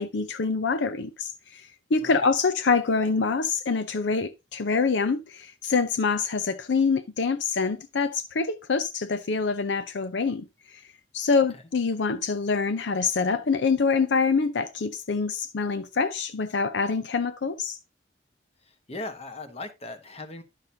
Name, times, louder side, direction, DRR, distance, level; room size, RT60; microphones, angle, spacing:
voice 1, 0.0-10.8 11.1-17.8, left 4 dB, 80° left, 0.6 m, -25 dB
voice 2, 18.6-20.4, left 2 dB, 35° left, 1.2 m, -38 dB
11.0 x 6.5 x 2.8 m
head